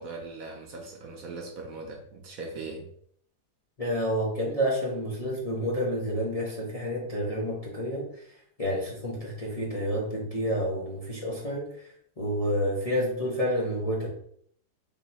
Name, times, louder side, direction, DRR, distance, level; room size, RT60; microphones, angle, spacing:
voice 1, 0.0-2.9, right 3 dB, 65° right, 2 dB, 1.0 m, -40 dB
voice 2, 3.8-11.8 12.2-14.1, equal, 30° left, -6 dB, 0.8 m, -29 dB
3.7 x 2.9 x 4.1 m, 0.63 s
omnidirectional pair, 1.8 m